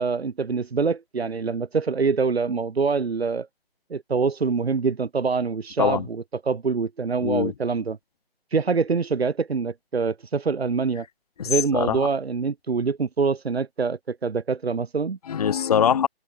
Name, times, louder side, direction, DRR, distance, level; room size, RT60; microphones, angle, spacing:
voice 1, 0.0-3.5 3.9-8.0 8.5-11.1 11.4-15.2, right 5 dB, 75° right, 1.0 m, -25 dB
voice 2, 7.2-7.5 11.4-12.0 15.3-16.1, left 8 dB, 40° left, 0.6 m, -22 dB
figure-of-eight pair, 140°, 31 cm